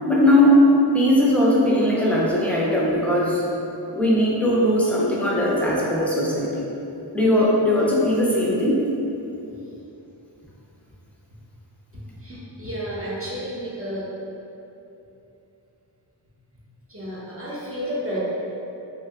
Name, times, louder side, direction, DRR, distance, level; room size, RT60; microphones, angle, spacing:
voice 1, 0.1-0.7 0.9-3.4 3.9-6.6 7.1-8.7, left 1 dB, 5° left, -6 dB, 0.5 m, -19 dB
voice 2, 12.2-14.1 16.9-18.2, equal, 30° right, -8 dB, 0.8 m, -31 dB
2.7 x 2.2 x 3.5 m, 2.9 s
wide cardioid pair, 55°, 46 cm